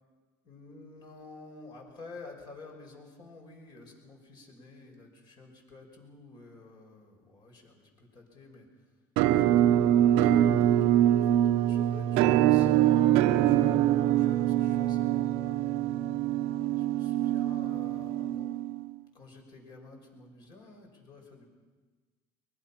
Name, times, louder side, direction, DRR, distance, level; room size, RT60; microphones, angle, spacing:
voice 1, 0.4-8.7 9.3-15.3 16.5-18.5 19.1-21.5, left 3 dB, 45° left, 2 dB, 5.7 m, -51 dB
Musical instrument, 9.2-18.9, right 12 dB, 75° right, 0.8 m, -24 dB
23.0 x 21.0 x 5.9 m, 1.3 s
cardioid pair, 120°, 10 cm